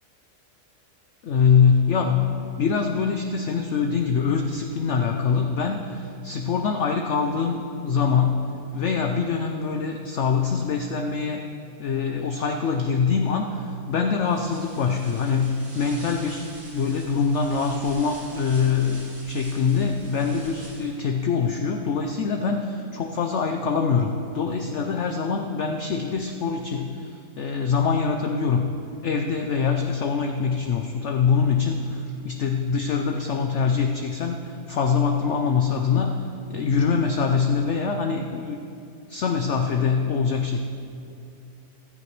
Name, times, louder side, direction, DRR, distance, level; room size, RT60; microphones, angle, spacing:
voice 1, 1.2-8.4 8.7-11.4 11.8-28.7 29.0-36.2 36.5-38.6 39.1-40.6, left 5 dB, 60° left, 4 dB, 0.8 m, -24 dB
sound 1, 14.2-21.1, right 1 dB, 80° right, 3.4 m, -45 dB
15.0 x 13.5 x 3.2 m, 2.6 s
omnidirectional pair, 1.6 m